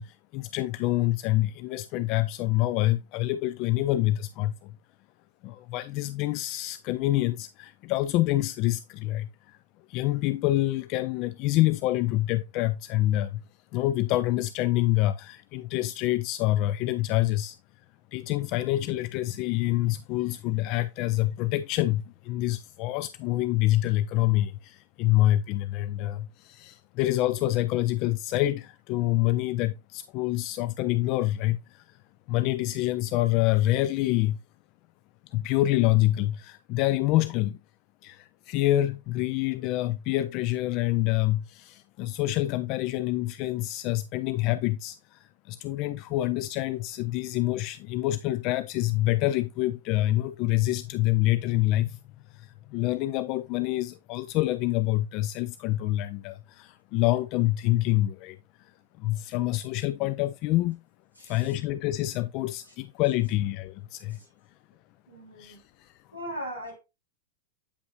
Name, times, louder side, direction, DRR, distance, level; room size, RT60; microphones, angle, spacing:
voice 1, 0.0-4.8 5.4-9.6 9.9-13.4 13.7-17.6 18.1-32.0 32.3-34.4 35.3-37.6 38.0-52.0 52.3-58.7 59.0-60.8 61.2-64.2 65.4-65.9, left 16 dB, 40° left, 0.4 m, -27 dB
voice 2, 61.2-61.6 64.1-64.3 65.1-65.6 66.1-66.8, equal, 85° left, 3.2 m, -39 dB
8.3 x 5.5 x 2.6 m
figure-of-eight pair, 90°, 0 cm